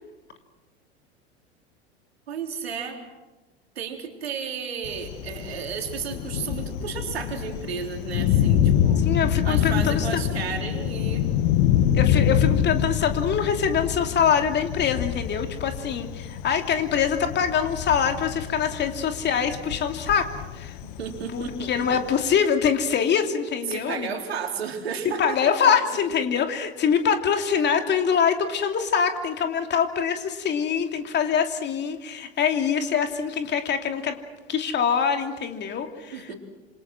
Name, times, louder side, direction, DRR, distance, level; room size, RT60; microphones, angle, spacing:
voice 1, 2.3-3.0 3.8-9.0 9.4-11.3 20.8-22.0 23.7-25.7 36.1-36.3, right 6 dB, 75° right, 4 dB, 3.8 m, -33 dB
Thunder, 4.8-22.4, left 9 dB, 50° left, 1.5 m, -26 dB
voice 2, 9.0-10.1 11.9-20.7 21.3-24.2 25.2-34.2 34.5-36.3, left 7 dB, 35° left, 6 dB, 2.9 m, -24 dB
27.0 x 27.0 x 6.2 m, 1.1 s
figure-of-eight pair, 85°, 31 cm